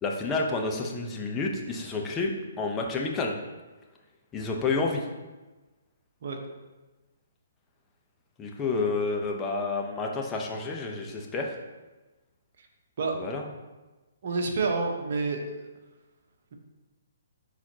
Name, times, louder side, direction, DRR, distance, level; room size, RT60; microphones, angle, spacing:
voice 1, 0.0-3.3 4.3-5.0 8.4-11.6 13.2-13.4, left 3 dB, 20° left, 1 dB, 1.0 m, -29 dB
voice 2, 14.2-15.4, right 4 dB, 55° right, 2 dB, 1.2 m, -28 dB
10.5 x 4.2 x 3.0 m, 1.2 s
figure-of-eight pair, 130°, 0 cm